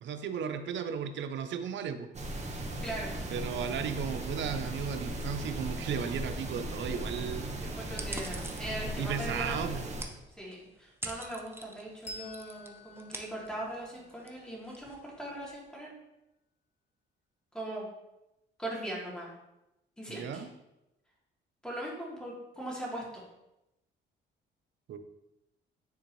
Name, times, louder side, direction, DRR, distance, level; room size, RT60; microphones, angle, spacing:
voice 1, 0.0-2.1 3.3-7.6 9.0-9.8 20.1-20.5 24.9-25.0, right 7 dB, 70° right, 9 dB, 0.7 m, -35 dB
sound 1, 2.1-10.0, right 1 dB, 35° right, 1.2 m, -37 dB
voice 2, 2.8-3.1 7.6-9.5 9.9-10.0 10.4-15.9 17.5-17.9 18.6-19.3 20.0-20.5 21.6-23.0, right 1 dB, 5° left, -5 dB, 2.4 m, -40 dB
sound 2, 8.0-15.6, right 2 dB, 10° right, 0.7 m, -47 dB
Bell, 12.0-15.1, left 1 dB, 35° left, 1.1 m, -50 dB
9.5 x 3.7 x 3.1 m, 0.92 s
cardioid pair, 90°, 20 cm